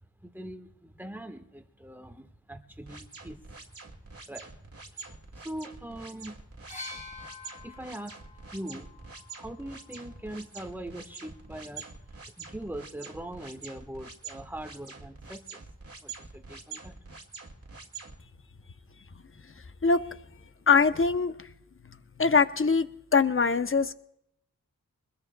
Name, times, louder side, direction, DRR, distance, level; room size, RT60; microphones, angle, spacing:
voice 1, 0.2-3.7 4.3-6.8 7.6-8.2 8.5-8.9 9.3-11.9 12.1-15.6 16.0-17.0, right 1 dB, 5° right, 6 dB, 1.3 m, -42 dB
sound 1, 2.9-18.2, right 5 dB, 45° right, 1.9 m, -45 dB
sound 2, 6.7-10.5 11.5-11.7, left 3 dB, 20° left, 5.0 m, -47 dB
voice 2, 20.7-21.5 22.2-22.9 23.1-23.9, left 5 dB, 40° left, 10 dB, 0.7 m, -22 dB
24.5 x 20.5 x 2.3 m, 0.78 s
wide cardioid pair, 80°, 33 cm